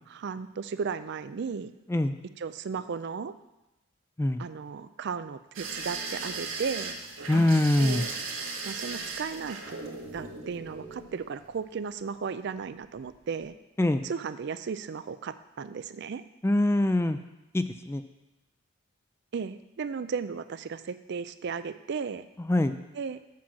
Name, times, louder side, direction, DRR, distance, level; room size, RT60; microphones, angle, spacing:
voice 1, 0.1-1.7 2.4-3.3 4.4-7.0 7.8-8.1 8.7-9.8 10.1-13.5 14.0-16.2 19.3-22.3 22.9-23.2, right 5 dB, 55° right, 12 dB, 0.4 m, -35 dB
sound 1, 5.5-11.6 12.8-13.2 13.4-13.5, right 4 dB, 85° right, 1.8 m, -37 dB
voice 2, 7.3-8.1 13.8-14.0 16.4-17.2 17.5-18.0 22.5-22.7, left 1 dB, 10° left, 10 dB, 0.3 m, -23 dB
7.5 x 6.0 x 7.2 m, 0.97 s
head